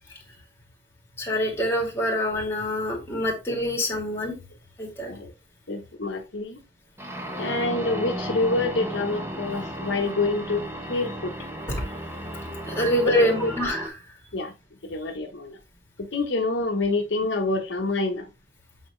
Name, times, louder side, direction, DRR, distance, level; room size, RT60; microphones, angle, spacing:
voice 1, 1.2-4.3 4.8-5.1 12.6-13.8, equal, 15° left, 2.6 m, -25 dB
voice 2, 5.7-6.6 7.4-11.3 13.0-13.5 14.3-14.5 14.9-15.6 16.0-18.3, left 2 dB, 70° left, 1.1 m, -27 dB
sound 1, 7.0-13.9, equal, 15° right, 1.2 m, -34 dB
8.5 x 4.1 x 3.2 m
head